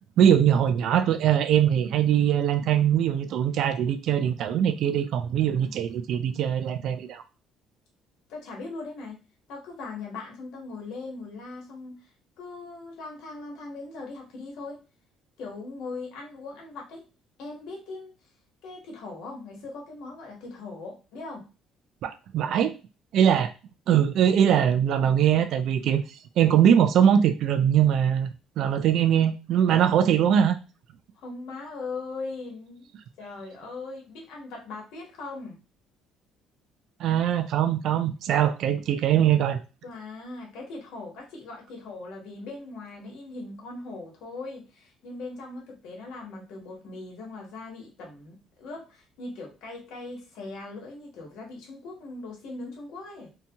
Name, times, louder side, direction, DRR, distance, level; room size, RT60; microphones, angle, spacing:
voice 1, 0.2-7.2 22.0-22.7 23.1-23.5 23.9-28.3 28.6-30.6 37.0-39.6, right 9 dB, 65° right, 8 dB, 0.3 m, -22 dB
voice 2, 8.3-12.1 12.4-14.8 15.4-17.1 17.4-18.1 18.6-21.5 31.1-32.9 33.2-35.6 39.8-53.3, left 3 dB, 75° left, -1 dB, 1.0 m, -40 dB
2.7 x 2.2 x 2.7 m, 0.31 s
cardioid pair, 130°, 0 cm